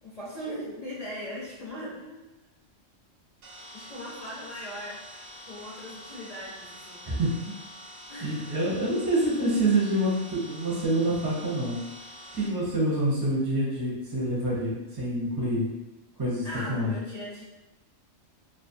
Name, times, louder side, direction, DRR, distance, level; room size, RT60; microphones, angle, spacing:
voice 1, 0.0-2.3 3.7-5.0 5.4-7.0 8.1-8.5 16.4-17.4, equal, 50° left, -8 dB, 0.5 m, -39 dB
sound 1, 3.4-12.5, equal, 90° right, 0.9 m, -46 dB
voice 2, 7.0-7.5 8.2-11.9 12.3-15.7 16.2-16.9, right 1 dB, 25° right, -6 dB, 0.5 m, -27 dB
2.4 x 2.3 x 2.5 m, 0.99 s
omnidirectional pair, 1.3 m